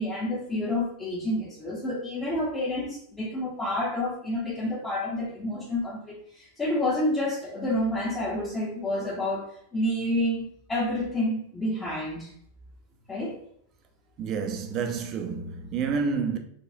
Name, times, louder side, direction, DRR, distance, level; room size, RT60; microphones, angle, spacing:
voice 1, 0.0-12.3 13.1-13.4, left 1 dB, 15° left, 0.7 m, -29 dB
voice 2, 14.2-16.4, right 5 dB, 35° right, 0.5 m, -29 dB
4.9 x 2.0 x 2.5 m
supercardioid pair, 145°, 0 cm